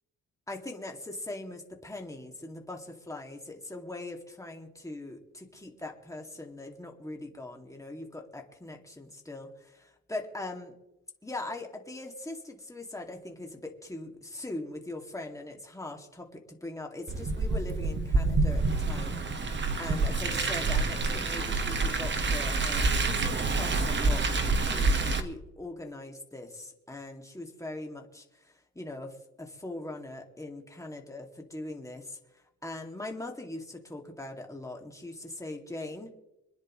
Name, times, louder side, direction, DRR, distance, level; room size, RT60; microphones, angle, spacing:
voice 1, 0.5-10.7 11.2-32.2 32.6-36.1, left 2 dB, 10° left, 2 dB, 2.4 m, -41 dB
Car, 17.1-25.2, right 3 dB, 40° right, 1.6 m, -27 dB
26.5 x 10.0 x 3.2 m, 0.92 s
cardioid pair, 90°, 30 cm